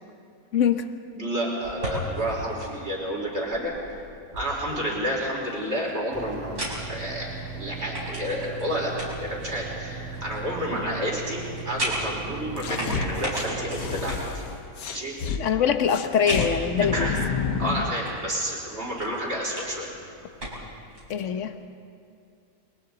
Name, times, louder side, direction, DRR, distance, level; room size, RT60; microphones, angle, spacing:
voice 1, 0.5-0.9 15.4-17.1 21.1-21.6, left 7 dB, 50° left, 8 dB, 1.2 m, -23 dB
voice 2, 1.1-3.7 4.3-8.9 9.2-14.4 14.9-15.1 16.9-17.3 17.6-19.9, equal, 40° right, -3 dB, 4.8 m, -30 dB
sound 1, 1.6-21.1, equal, 60° right, 6.0 m, -38 dB
sound 2, 6.1-14.1, right 4 dB, 15° left, 2.2 m, -38 dB
sound 3, 12.6-15.4 15.9-18.0, left 6 dB, 80° left, 1.7 m, -30 dB
30.0 x 22.5 x 4.0 m, 2.4 s
omnidirectional pair, 1.8 m